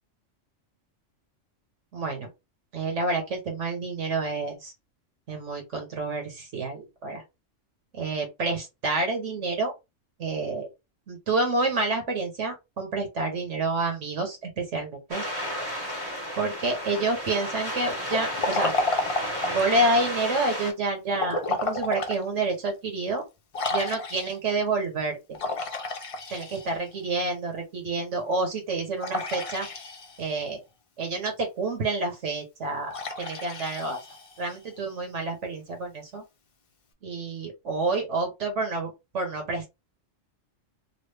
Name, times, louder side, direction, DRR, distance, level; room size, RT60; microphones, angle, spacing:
voice 1, 1.9-2.3 2.7-4.7 5.3-7.2 7.9-9.7 10.2-10.7 11.1-15.2 16.4-18.7 19.5-23.2 23.7-25.2 26.3-29.7 30.2-30.6 31.0-34.0 34.4-36.2 37.0-39.7, right 3 dB, 70° right, 1.3 m, -28 dB
sound 1, 15.1-20.7, equal, 20° right, 0.9 m, -32 dB
Liquid, 18.1-19.7 21.1-22.2 22.7-22.8 23.5-24.5 25.3-27.0 29.0-30.4 32.9-34.5, left 3 dB, 45° left, 0.4 m, -31 dB
3.1 x 2.4 x 3.2 m
omnidirectional pair, 1.3 m